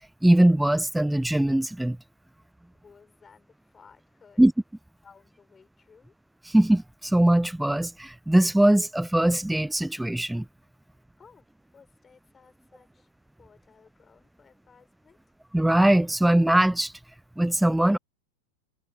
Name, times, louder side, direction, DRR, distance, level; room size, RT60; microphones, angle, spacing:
voice 1, 0.2-2.0 4.4-4.5 6.5-10.5 15.5-16.9 17.4-18.0, right 1 dB, 5° right, 0.3 m, -21 dB
voice 2, 2.4-4.4 5.0-6.1 11.2-13.1 13.4-15.3, left 5 dB, 15° left, 7.4 m, -57 dB
figure-of-eight pair, 90°, 0 cm